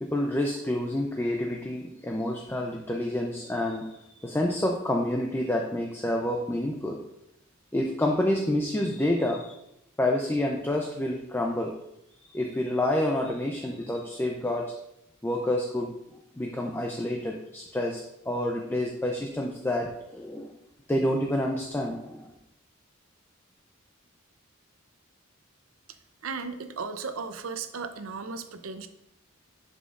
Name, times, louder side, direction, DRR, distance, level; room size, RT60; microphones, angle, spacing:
voice 1, 0.0-7.0 7.7-9.6 10.0-11.7 12.3-14.7 15.2-15.9 16.3-20.5 20.9-22.3, left 1 dB, 10° left, 1 dB, 0.5 m, -28 dB
voice 2, 26.2-28.9, right 4 dB, 75° right, 9 dB, 0.6 m, -35 dB
11.0 x 5.2 x 2.5 m, 0.81 s
head